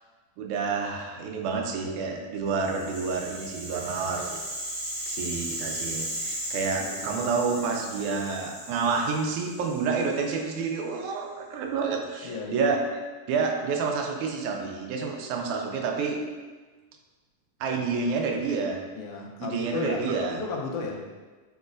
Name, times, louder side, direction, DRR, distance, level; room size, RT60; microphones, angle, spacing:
voice 1, 0.4-4.4 5.1-13.0 13.3-16.3 17.6-18.8 19.4-20.4, right 4 dB, 85° right, 2 dB, 2.0 m, -29 dB
Rattle (instrument), 2.5-10.7, right 1 dB, 60° right, 2.6 m, -36 dB
voice 2, 6.8-7.2 12.2-12.7 18.9-21.0, left 4 dB, 90° left, 0 dB, 1.3 m, -34 dB
6.2 x 3.0 x 2.5 m, 1.3 s
omnidirectional pair, 3.4 m